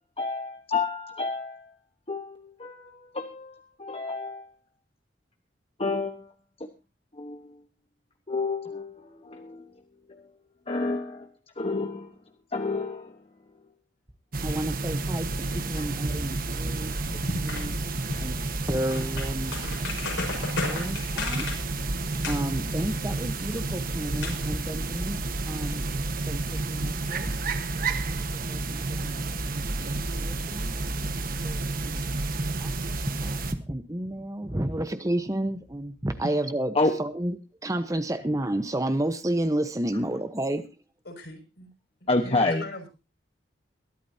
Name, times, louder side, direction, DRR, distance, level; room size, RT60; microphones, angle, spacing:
voice 1, 0.2-1.7 2.1-4.4 5.8-6.3 7.2-7.6 8.3-9.7 10.1-10.2 10.7-11.3 11.6-12.1 12.5-13.2 15.8-15.9 36.7-36.9 42.1-42.6, left 3 dB, 35° left, 5 dB, 1.2 m, -29 dB
sound 1, 14.3-33.5, right 2 dB, 50° right, 1.3 m, -30 dB
voice 2, 14.4-15.3 15.5-17.8 18.2-18.4 18.7-19.5 20.6-21.5 22.3-25.8 26.3-27.3 28.1-30.9 31.4-32.0 32.6-37.3 37.6-40.7, right 1 dB, 20° right, 9 dB, 1.0 m, -31 dB
sound 2, 16.8-24.8, left 3 dB, 85° left, 6.1 m, -36 dB
voice 3, 41.0-41.7 42.0-42.9, left 1 dB, 65° left, 5 dB, 6.0 m, -42 dB
22.5 x 12.5 x 2.8 m, 0.29 s
head